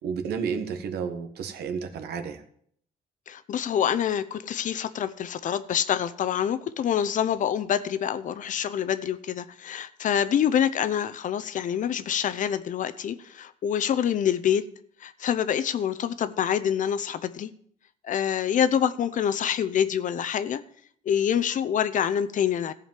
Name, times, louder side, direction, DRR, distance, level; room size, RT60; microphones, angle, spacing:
voice 1, 0.0-2.4, right 6 dB, 70° right, 1.4 m, -31 dB
voice 2, 3.3-14.6 15.0-17.5 18.0-20.6 21.1-22.7, left 9 dB, 50° left, 0.7 m, -26 dB
14.5 x 5.1 x 7.5 m
cardioid pair, 110°, 17 cm